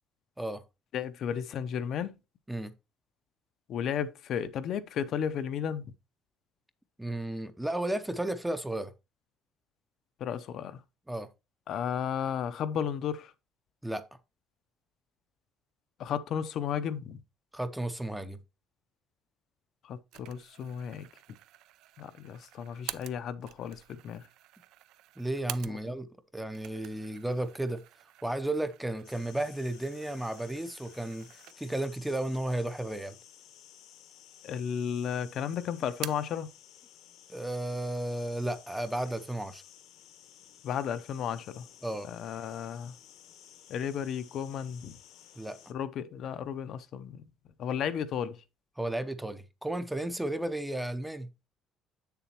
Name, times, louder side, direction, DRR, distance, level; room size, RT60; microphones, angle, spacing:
voice 1, 0.9-2.2 3.7-5.8 10.2-10.8 11.7-13.3 16.0-17.2 19.8-21.1 22.0-24.2 25.7-25.8 34.4-36.5 40.6-41.7 42.0-42.9 43.7-45.0 45.7-47.2 47.6-48.4, left 8 dB, 50° left, 0.6 m, -34 dB
voice 2, 7.0-8.9 11.1-11.3 13.8-14.0 17.5-18.4 25.2-26.1 26.3-27.8 28.2-31.3 31.6-33.2 37.3-39.6 41.8-42.1 45.4-45.6 48.8-51.3, right 1 dB, 5° right, 0.6 m, -33 dB
sound 1, 20.1-26.1 26.4-31.9 32.3-32.4 33.3-33.9 34.2-35.0 35.3-36.4, right 14 dB, 70° right, 0.4 m, -47 dB
sound 2, 29.0-45.7, left 11 dB, 65° left, 1.0 m, -55 dB
8.3 x 6.9 x 2.9 m
cardioid pair, 170°, 0 cm